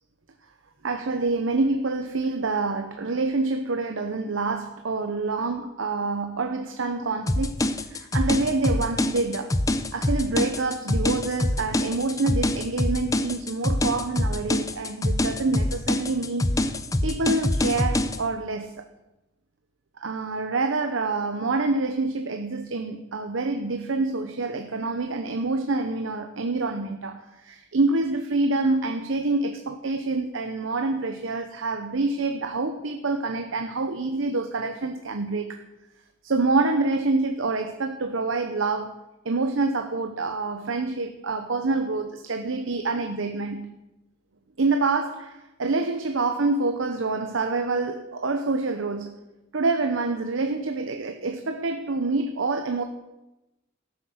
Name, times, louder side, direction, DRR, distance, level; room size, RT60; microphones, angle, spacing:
voice 1, 0.8-7.6 7.9-9.6 9.9-16.5 17.0-18.8 20.0-35.6 36.2-39.0 39.2-43.7 44.6-49.2 49.5-52.8, right 3 dB, 85° right, 0.8 m, -27 dB
sound 1, 7.3-18.2, left 1 dB, 15° left, 0.5 m, -25 dB
14.0 x 8.3 x 6.4 m
head